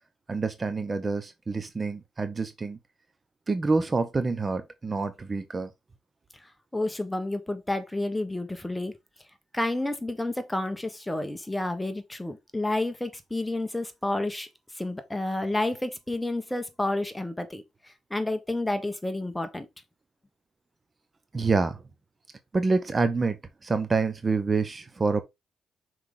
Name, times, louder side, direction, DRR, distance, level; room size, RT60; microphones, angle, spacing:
voice 1, 0.3-2.8 3.5-5.7 21.3-21.8 22.5-25.2, right 4 dB, 30° right, 0.8 m, -27 dB
voice 2, 6.7-8.9 9.5-14.5 14.8-17.6 18.1-19.7, left 2 dB, 10° left, 1.2 m, -30 dB
5.9 x 4.7 x 3.8 m
cardioid pair, 90°, 0 cm